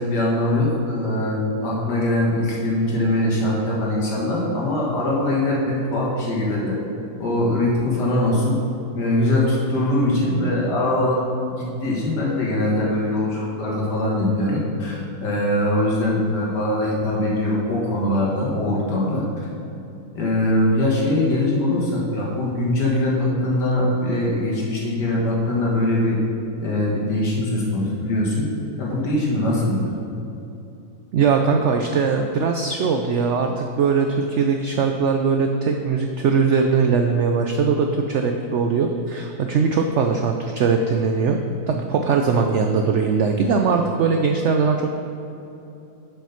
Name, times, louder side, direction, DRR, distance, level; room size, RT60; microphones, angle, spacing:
voice 1, 0.0-6.8 7.2-8.6 9.0-11.2 11.5-19.3 20.1-26.2 26.6-28.5 28.8-29.9, left 1 dB, 80° left, -4 dB, 2.2 m, -22 dB
voice 2, 31.1-41.4 41.7-44.9, right 5 dB, 85° right, 4 dB, 0.6 m, -20 dB
7.3 x 5.5 x 5.7 m, 2.9 s
omnidirectional pair, 1.8 m